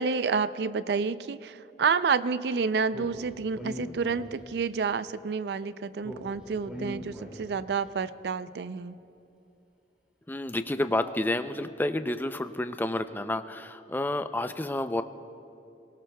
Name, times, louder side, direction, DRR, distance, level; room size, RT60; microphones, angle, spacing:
voice 1, 0.0-9.0, right 5 dB, 65° right, 14 dB, 0.4 m, -29 dB
Speech, 2.9-4.7 6.0-7.8, equal, 5° right, 2.4 m, -41 dB
voice 2, 10.3-15.0, left 1 dB, 10° left, 9 dB, 0.4 m, -30 dB
27.0 x 17.5 x 2.3 m, 2.7 s
head